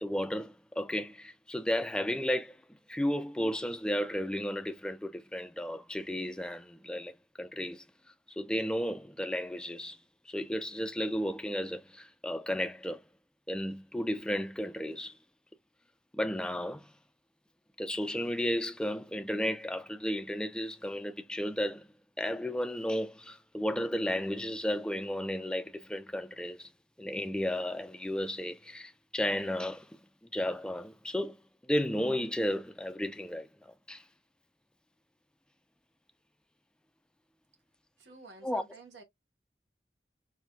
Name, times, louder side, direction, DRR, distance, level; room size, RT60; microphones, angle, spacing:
voice 1, 0.0-2.6 2.9-7.8 8.4-10.0 10.3-13.0 13.5-15.1 16.1-16.9 17.8-21.9 22.2-26.7 27.0-30.0 30.3-31.4 31.7-33.5 33.9-34.0 38.4-38.6, equal, 5° left, 0.3 m, -33 dB
voice 2, 38.0-39.0, right 3 dB, 80° right, 1.2 m, -51 dB
4.3 x 2.5 x 2.2 m
head